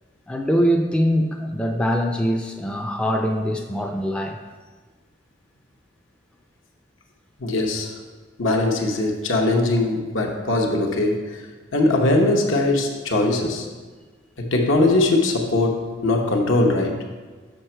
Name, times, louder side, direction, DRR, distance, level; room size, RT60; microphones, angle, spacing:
voice 1, 0.3-4.4, equal, 5° left, 2 dB, 0.4 m, -23 dB
voice 2, 7.4-7.9 8.4-11.4 11.7-13.7 14.4-17.0, left 2 dB, 75° left, 2 dB, 0.9 m, -21 dB
6.4 x 5.7 x 4.4 m, 1.4 s
head